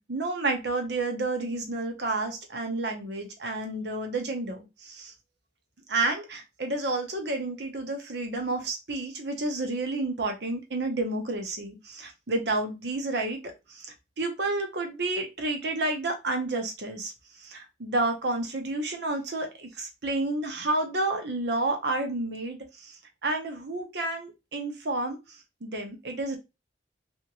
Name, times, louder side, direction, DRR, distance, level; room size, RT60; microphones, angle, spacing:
voice 1, 0.0-5.1 5.9-17.1 17.4-22.9 23.2-25.2 25.6-26.4, right 2 dB, 70° right, 4 dB, 0.9 m, -30 dB
3.5 x 2.7 x 3.0 m, 0.24 s
head